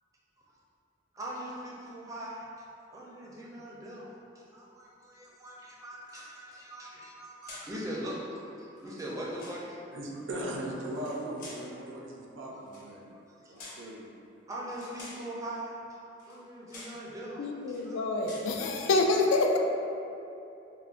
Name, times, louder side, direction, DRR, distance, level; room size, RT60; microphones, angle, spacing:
voice 1, 1.1-2.5 2.9-4.1 4.3-9.8 13.4-13.8 14.5-17.5 17.8-18.0, right 1 dB, 15° right, -5 dB, 0.4 m, -41 dB
sound 1, 6.0-6.6 7.4-7.8 8.8-9.6 10.9-11.7 12.6-12.9 13.6-13.9 14.7-15.3 16.2-16.4 16.7-17.0 17.6-17.9 18.2-18.6, left 2 dB, 45° left, 0.9 m, -49 dB
voice 2, 9.9-13.1 13.5-14.1, right 1 dB, 75° right, -2 dB, 0.5 m, -38 dB
voice 3, 17.4-19.6, left 2 dB, 80° left, 2 dB, 0.3 m, -27 dB
4.4 x 2.1 x 2.4 m, 2.8 s
head